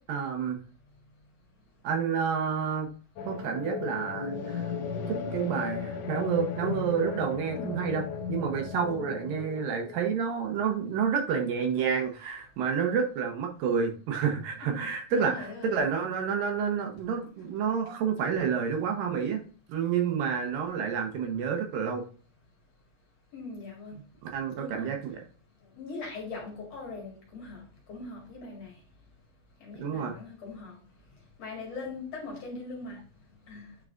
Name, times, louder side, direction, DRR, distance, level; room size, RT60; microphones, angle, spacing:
voice 1, 0.1-0.6 1.8-2.9 3.3-4.6 5.1-8.0 8.3-19.4 19.7-22.0 24.2-25.2 29.8-30.1, right 6 dB, 75° right, 4 dB, 2.5 m, -29 dB
sound 1, 3.2-11.1, left 6 dB, 85° left, 1.4 m, -36 dB
voice 2, 7.5-8.0 14.6-14.9 15.1-15.7 23.3-24.0 24.6-25.0 25.8-27.6 27.9-28.7 29.6-30.8 31.4-33.0 33.5-33.7, left 3 dB, 50° left, -1 dB, 2.7 m, -41 dB
9.2 x 4.7 x 2.5 m, 0.39 s
omnidirectional pair, 4.2 m